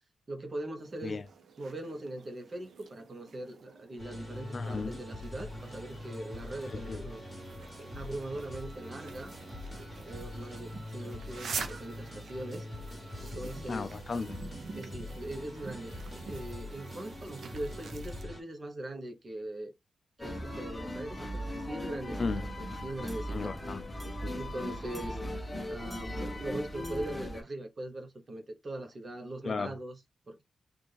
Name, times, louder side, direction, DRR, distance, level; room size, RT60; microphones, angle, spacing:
voice 1, 0.3-1.2 1.6-7.2 7.8-9.3 10.0-12.7 13.2-13.9 14.7-19.7 20.2-23.5 24.3-25.2 25.7-30.0 30.3-30.4, right 1 dB, 30° right, 0.9 m, -41 dB
sound 1, 0.8-18.2, right 5 dB, 65° right, 0.6 m, -47 dB
sound 2, 4.0-18.4, left 1 dB, 15° right, 1.6 m, -43 dB
voice 2, 4.5-5.0 6.7-7.0 13.7-14.4 22.2-22.4 23.3-24.3 29.4-29.7, left 4 dB, 40° left, 0.3 m, -35 dB
sound 3, 20.2-27.4, equal, 10° left, 0.8 m, -38 dB
4.1 x 2.4 x 3.3 m
wide cardioid pair, 155°, 0 cm